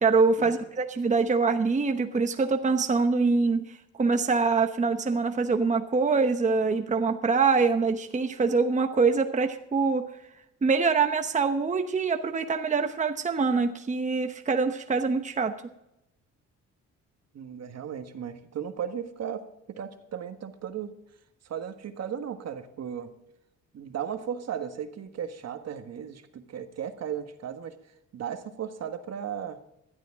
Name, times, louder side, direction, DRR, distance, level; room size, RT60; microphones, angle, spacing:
voice 1, 0.0-3.7 4.0-10.1 10.6-15.5, right 4 dB, 25° right, 7 dB, 1.0 m, -24 dB
voice 2, 17.3-20.9 21.4-23.1 23.7-27.8 28.1-29.6, right 8 dB, 60° right, 8 dB, 1.5 m, -36 dB
16.5 x 12.0 x 3.6 m, 0.83 s
cardioid pair, 90°, 30 cm